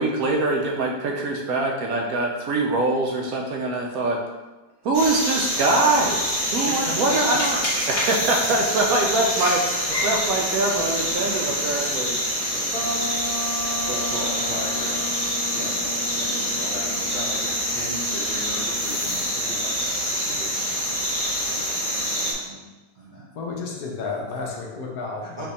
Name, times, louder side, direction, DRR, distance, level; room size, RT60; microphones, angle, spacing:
voice 1, 0.0-4.2 4.8-12.2, right 2 dB, 70° right, 1 dB, 0.9 m, -23 dB
sound 1, 4.9-22.3, equal, 25° left, 1.0 m, -26 dB
voice 2, 6.6-7.4 11.8-12.1 12.5-13.1 13.5-15.2 15.5-22.6 22.9-23.3 25.4-25.5, equal, 90° right, -7 dB, 0.4 m, -38 dB
sound 2, 12.7-19.4, left 1 dB, 45° left, 0.5 m, -35 dB
voice 3, 23.3-25.5, left 4 dB, 65° left, -1 dB, 1.1 m, -31 dB
4.4 x 2.7 x 4.1 m, 1.2 s
omnidirectional pair, 1.8 m